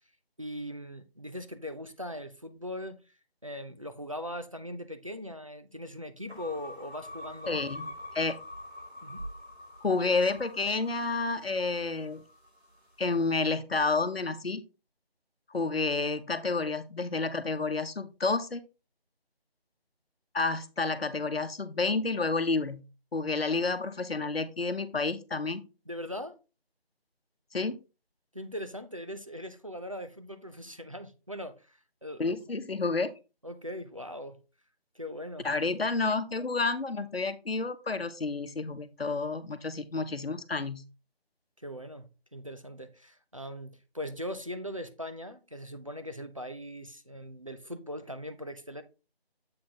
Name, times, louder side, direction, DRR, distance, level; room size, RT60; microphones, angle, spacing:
voice 1, 0.4-3.0 3.4-8.0 9.0-9.2 25.9-26.4 28.3-32.6 33.4-34.4 34.9-35.5 41.6-48.8, equal, 35° right, 0.5 m, -40 dB
sound 1, 6.3-12.6, left 1 dB, 85° right, 2.9 m, -45 dB
voice 2, 7.5-8.4 9.8-12.2 13.0-14.6 15.5-18.6 20.3-22.8 23.1-25.6 27.5-27.8 32.2-33.1 35.4-40.8, left 3 dB, 70° left, 0.9 m, -30 dB
7.7 x 3.6 x 4.1 m
figure-of-eight pair, 170°, 31 cm